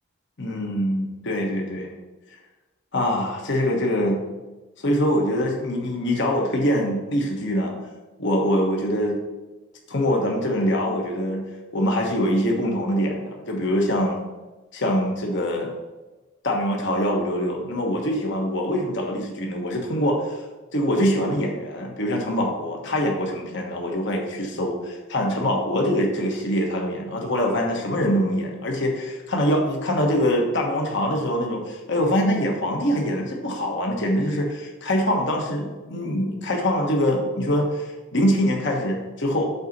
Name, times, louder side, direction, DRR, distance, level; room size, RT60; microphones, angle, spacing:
voice 1, 0.4-1.9 2.9-4.2 4.8-7.7 8.2-9.2 9.9-11.4 11.7-14.2 14.7-15.7 16.4-20.4 20.7-39.4, equal, 55° left, 0 dB, 1.3 m, -24 dB
8.1 x 4.0 x 6.0 m, 1.1 s
head